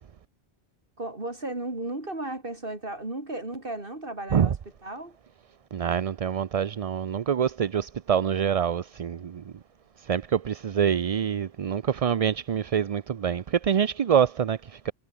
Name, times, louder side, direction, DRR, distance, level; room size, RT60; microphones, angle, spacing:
voice 1, 1.0-4.5 4.8-5.2, right 2 dB, 60° right, 4.2 m, -34 dB
voice 2, 5.7-9.5 10.0-14.9, right 8 dB, 45° right, 0.5 m, -26 dB
omnidirectional pair, 1.0 m